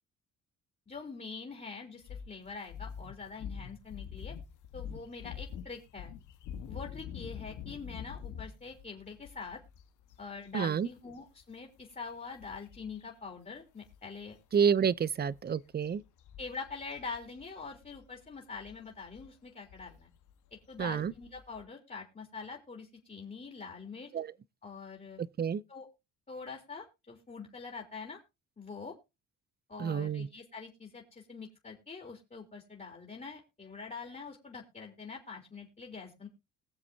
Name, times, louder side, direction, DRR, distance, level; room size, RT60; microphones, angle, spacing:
voice 1, 0.9-4.3 4.7-6.1 6.7-9.6 10.2-14.4 16.4-20.1 20.7-24.1 24.6-25.2 25.7-25.9 26.3-28.2 28.6-28.9 29.7-36.3, left 4 dB, 25° left, 3.2 m, -44 dB
sound 1, 2.0-13.1 13.4-13.6 13.9-21.6, left 8 dB, 85° left, 1.5 m, -46 dB
voice 2, 10.5-10.9 14.5-16.0 20.8-21.1 24.1-24.3 25.2-25.6 29.8-30.3, right 7 dB, 35° right, 0.6 m, -29 dB
21.5 x 7.3 x 2.8 m
cardioid pair, 90°, 30 cm